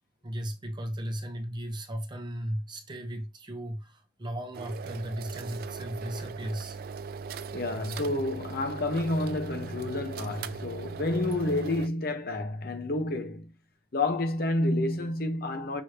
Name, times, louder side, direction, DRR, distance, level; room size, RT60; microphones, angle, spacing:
voice 1, 0.2-6.8, equal, 25° right, 0.7 m, -36 dB
sound 1, 4.5-11.9, right 5 dB, 55° right, 0.3 m, -39 dB
voice 2, 7.5-13.5 13.9-15.8, left 2 dB, 55° left, 0.8 m, -29 dB
6.1 x 2.7 x 3.2 m
head